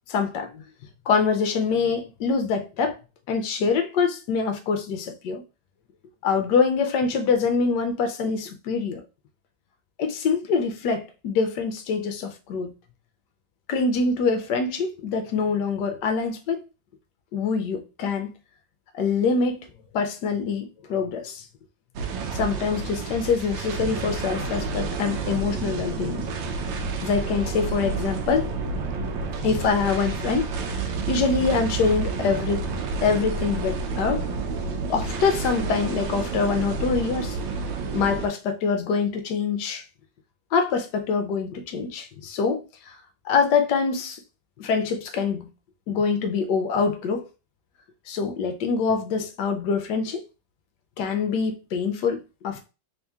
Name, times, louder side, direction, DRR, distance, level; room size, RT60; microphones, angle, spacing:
voice 1, 0.1-0.6 1.1-3.0 3.3-5.4 6.2-9.0 10.0-12.7 13.7-16.6 17.3-18.3 18.9-19.7 19.9-21.4 22.3-26.2 27.0-28.5 29.4-30.5 31.1-32.7 33.0-34.2 34.9-37.4 37.9-39.8 40.5-42.9 43.3-44.2 44.6-45.5 45.9-47.3 48.1-50.2 51.0-52.7, left 5 dB, 70° left, 1.2 m, -25 dB
sound 1, 22.0-38.3, right 4 dB, 80° right, 1.4 m, -30 dB
3.6 x 2.8 x 3.5 m
omnidirectional pair, 2.1 m